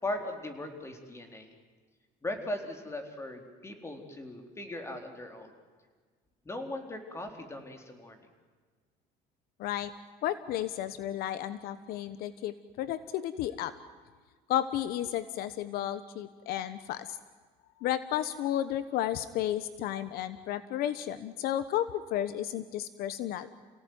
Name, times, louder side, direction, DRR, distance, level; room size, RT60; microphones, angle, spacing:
voice 1, 0.0-1.5 2.2-5.5 6.4-8.2, left 1 dB, 15° left, 5 dB, 4.1 m, -38 dB
voice 2, 9.6-9.9 10.2-13.7 14.5-17.2 17.8-23.5, left 12 dB, 70° left, 13 dB, 1.2 m, -33 dB
29.0 x 18.0 x 9.5 m, 1.5 s
cardioid pair, 125°, 16 cm